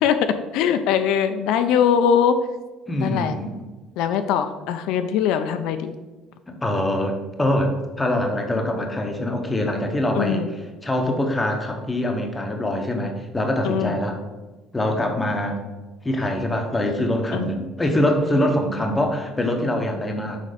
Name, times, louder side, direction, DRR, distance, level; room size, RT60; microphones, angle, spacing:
voice 1, 0.0-2.4 3.0-3.4 4.0-5.9 10.2-10.5 13.6-14.0 17.3-17.5, left 8 dB, 70° left, 9 dB, 0.4 m, -21 dB
voice 2, 2.9-3.6 6.5-7.7 8.0-14.2 14.7-15.6 16.0-20.4, left 1 dB, 10° left, 3 dB, 0.7 m, -24 dB
6.4 x 4.3 x 5.0 m, 1.2 s
cardioid pair, 180°, 0 cm